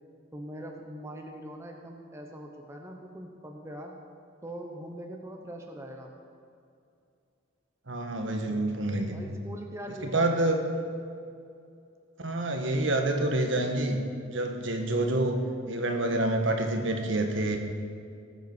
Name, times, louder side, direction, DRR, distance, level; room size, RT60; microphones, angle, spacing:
voice 1, 0.3-4.0 4.4-6.1 9.1-10.8, equal, 15° right, 2 dB, 1.0 m, -42 dB
voice 2, 7.9-9.2 10.0-10.6 12.2-14.0 14.3-15.4 15.7-17.6, right 2 dB, 65° right, 4 dB, 1.6 m, -27 dB
19.0 x 8.1 x 6.2 m, 2.5 s
head